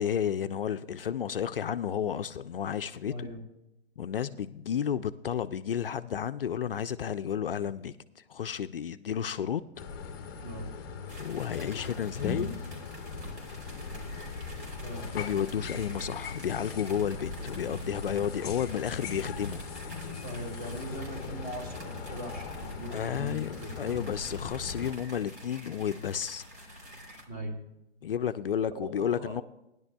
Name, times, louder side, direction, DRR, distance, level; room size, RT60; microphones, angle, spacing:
voice 1, 0.0-3.3 4.0-9.6 11.2-12.5 15.1-19.7 22.9-26.9 28.0-29.4, left 8 dB, 55° left, 0.4 m, -32 dB
voice 2, 3.1-3.4 10.4-10.7 14.8-15.1 20.2-24.2 27.3-27.6 28.7-29.4, right 1 dB, 35° right, 2.4 m, -40 dB
sound 1, 9.8-24.9, left 5 dB, 20° left, 0.7 m, -40 dB
sound 2, 11.1-27.3, equal, 80° right, 3.5 m, -49 dB
sound 3, 13.1-22.8, equal, 55° right, 1.8 m, -45 dB
16.0 x 10.5 x 2.3 m
hypercardioid pair, 155°, 34 cm